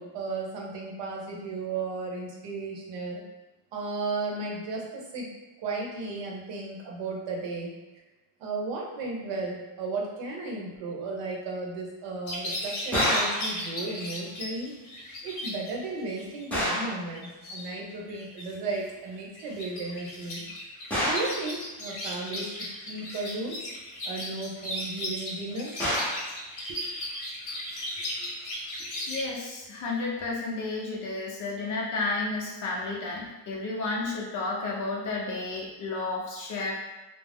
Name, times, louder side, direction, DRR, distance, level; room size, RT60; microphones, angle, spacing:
voice 1, 0.0-3.2 3.7-5.3 5.6-7.7 8.4-14.7 15.2-20.5 21.0-23.6 24.0-25.7 26.7-26.8 28.2-28.3, right 3 dB, 75° right, -1 dB, 0.8 m, -34 dB
sound 1, 12.3-15.7 16.1-16.4 17.1-17.7 18.1-18.9 19.2-29.2, left 1 dB, 65° left, 0.9 m, -36 dB
sound 2, 12.9-13.5 16.5-17.0 20.9-21.4 25.8-26.3, equal, 5° left, 0.7 m, -27 dB
voice 2, 29.1-36.7, left 3 dB, 45° left, -2 dB, 0.6 m, -32 dB
2.5 x 2.0 x 3.4 m, 1.1 s
cardioid pair, 165°, 43 cm